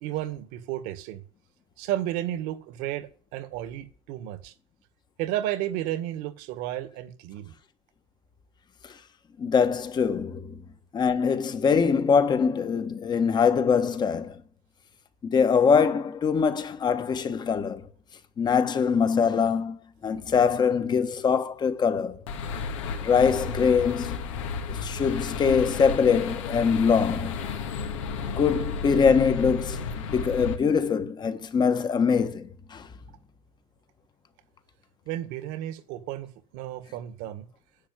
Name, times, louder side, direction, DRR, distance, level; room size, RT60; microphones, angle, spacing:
voice 1, 0.0-1.2 1.8-4.5 5.2-7.5 35.1-37.5, right 13 dB, 65° right, 1.8 m, -32 dB
voice 2, 9.4-10.6 10.9-14.4 15.2-17.9 18.4-19.8 20.0-22.2 23.0-24.2 24.7-27.4 28.4-32.9, left 6 dB, 25° left, 1.4 m, -23 dB
sound 1, 22.3-30.6, left 5 dB, 90° left, 2.0 m, -32 dB
10.5 x 7.0 x 9.5 m
supercardioid pair, 120°, 16 cm